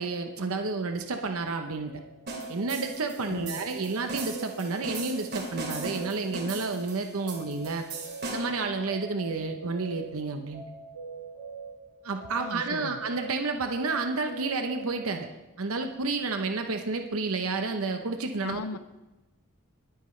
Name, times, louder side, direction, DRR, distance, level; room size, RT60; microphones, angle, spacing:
voice 1, 0.0-1.9 2.5-7.8 8.3-10.6 12.0-15.3 15.6-18.6, right 3 dB, 70° right, 5 dB, 0.8 m, -30 dB
sound 1, 1.8-15.1, right 4 dB, 50° left, 4.9 m, -44 dB
sound 2, 2.3-8.6, right 2 dB, 50° right, 2.9 m, -38 dB
voice 2, 3.3-3.6 12.4-13.0 18.4-18.8, left 4 dB, 80° left, 13 dB, 0.5 m, -37 dB
22.0 x 9.4 x 3.2 m, 1.1 s
head